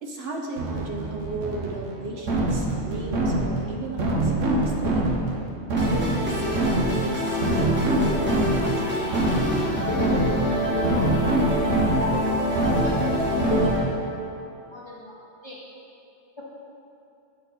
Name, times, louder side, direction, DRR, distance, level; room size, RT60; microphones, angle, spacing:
voice 1, 0.0-5.1 5.7-9.2, right 2 dB, 60° right, 0 dB, 0.8 m, -35 dB
sound 1, 0.6-14.1, right 2 dB, 90° right, 1.1 m, -25 dB
sound 2, 5.8-13.8, left 1 dB, 10° right, 1.0 m, -26 dB
voice 2, 10.9-11.4 12.8-13.0 13.4-13.9 14.7-15.1 15.4-15.6, left 1 dB, 30° left, -6 dB, 0.7 m, -40 dB
7.8 x 4.0 x 4.1 m, 2.7 s
omnidirectional pair, 1.3 m